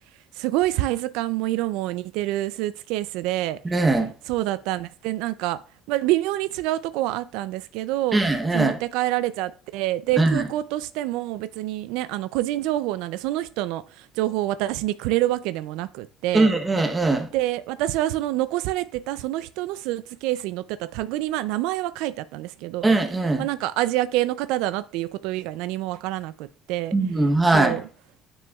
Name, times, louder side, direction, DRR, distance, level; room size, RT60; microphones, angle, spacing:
voice 1, 0.4-3.6 4.3-5.6 5.9-8.2 8.5-16.5 17.3-23.0 23.4-26.9 27.5-27.8, right 15 dB, 85° right, 0.3 m, -27 dB
voice 2, 3.6-4.1 8.1-8.8 10.2-10.5 16.3-17.3 22.8-23.5 26.9-27.7, right 2 dB, 15° right, 0.9 m, -20 dB
9.2 x 6.0 x 2.3 m
cardioid pair, 155°, 0 cm